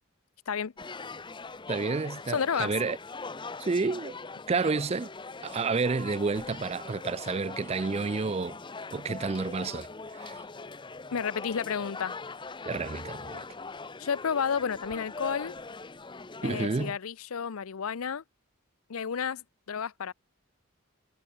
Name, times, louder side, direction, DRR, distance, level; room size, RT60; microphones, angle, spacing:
sound 1, 0.8-16.9, left 3 dB, 20° left, 0.8 m, -42 dB
voice 1, 1.7-3.0 3.6-4.2 4.5-5.1 5.4-8.6 8.9-9.9 10.1-10.4 12.7-13.5 16.4-17.0, right 4 dB, 30° right, 0.4 m, -30 dB
voice 2, 2.3-2.8 11.1-12.1 14.0-15.5 16.4-18.2 18.9-20.1, left 6 dB, 80° left, 0.6 m, -31 dB
head